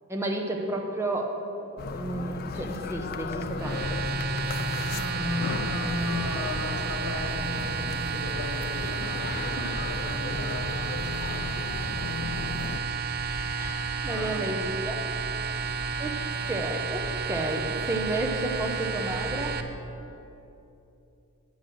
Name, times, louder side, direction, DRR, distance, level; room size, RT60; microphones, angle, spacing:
voice 1, 0.1-4.0 9.6-9.7 13.6-15.0 15.6-16.2 16.5-19.6, right 1 dB, 10° right, 1 dB, 0.8 m, -32 dB
sound 1, 1.8-12.8, left 3 dB, 45° left, 0.4 m, -35 dB
sound 2, 3.6-19.6, right 5 dB, 45° right, 0.5 m, -31 dB
voice 2, 4.9-9.6 9.9-10.7 14.0-14.5, left 2 dB, 70° left, 2 dB, 1.2 m, -36 dB
8.5 x 6.2 x 6.2 m, 2.9 s
head